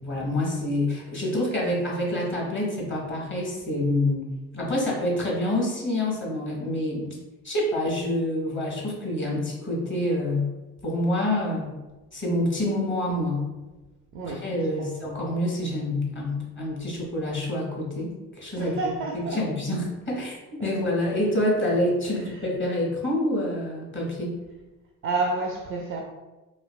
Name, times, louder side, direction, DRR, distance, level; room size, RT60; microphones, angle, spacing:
voice 1, 0.0-4.3 4.5-7.1 7.4-10.5 10.8-11.7 12.1-13.4 14.3-18.8 19.1-24.4, left 1 dB, 25° left, 1.4 m, -27 dB
voice 2, 18.6-19.4 20.6-20.7 22.3-22.5 25.0-26.0, right 3 dB, 35° right, 0.4 m, -30 dB
3.1 x 2.8 x 2.3 m
figure-of-eight pair, 45°, 42 cm